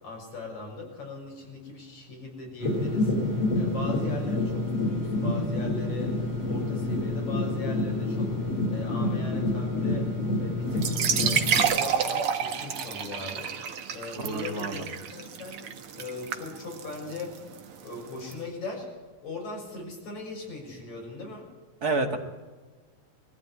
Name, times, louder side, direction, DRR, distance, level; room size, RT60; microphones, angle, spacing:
voice 1, 0.0-3.1 3.5-6.1 6.4-8.3 8.7-10.1 10.4-10.9 11.2-13.5 13.9-15.6 15.9-17.3 17.8-18.9 19.2-21.5, left 3 dB, 75° left, 0 dB, 7.9 m, -39 dB
sound 1, 2.6-11.6, left 2 dB, 55° left, 7.1 m, -28 dB
sound 2, 10.7-18.3, right 7 dB, 55° right, 2.0 m, -30 dB
voice 2, 14.2-14.9 21.8-22.2, right 3 dB, 35° right, 4 dB, 2.0 m, -29 dB
21.5 x 14.5 x 9.7 m, 1.3 s
omnidirectional pair, 3.3 m